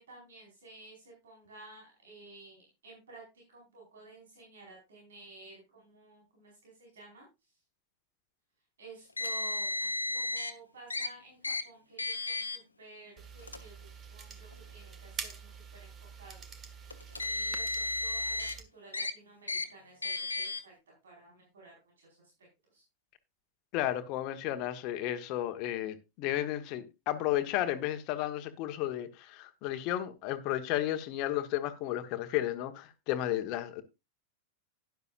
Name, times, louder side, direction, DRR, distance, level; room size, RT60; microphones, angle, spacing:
voice 1, 0.0-3.2 3.5-7.5 8.8-15.9 16.2-16.6 17.1-20.8 21.0-22.3 22.7-22.8, right 3 dB, 65° right, 4.8 m, -53 dB
Car, 9.2-10.5 10.9-11.1 11.4-11.6 12.0-12.6 13.4-13.6 14.5-14.6 16.9-18.5 18.9-19.1 19.5-19.7 20.0-20.6, left 2 dB, 80° left, 1.2 m, -33 dB
sound 1, 13.2-18.6, right 6 dB, 25° right, 1.6 m, -46 dB
voice 2, 23.7-33.8, left 13 dB, 40° left, 1.3 m, -33 dB
12.0 x 10.5 x 2.5 m
figure-of-eight pair, 90°, 0 cm